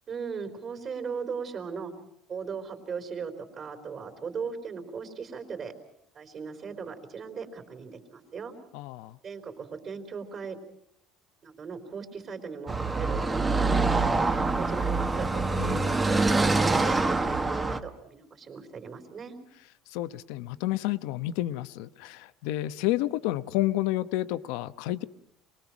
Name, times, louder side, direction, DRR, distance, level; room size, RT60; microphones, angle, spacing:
voice 1, 0.1-1.9 2.3-5.7 6.1-8.5 9.2-10.6 11.4-13.2 13.9-15.3 16.0-17.2 17.4-19.4, right 5 dB, 35° right, 5 dB, 3.7 m, -38 dB
voice 2, 8.7-9.2 15.6-16.0 19.9-25.0, left 15 dB, 80° left, 14 dB, 0.9 m, -30 dB
Car passing by / Traffic noise roadway noise, 12.7-17.8, right 3 dB, 15° right, 1.2 m, -25 dB
27.5 x 20.5 x 6.1 m, 0.74 s
cardioid pair, 150°, 0 cm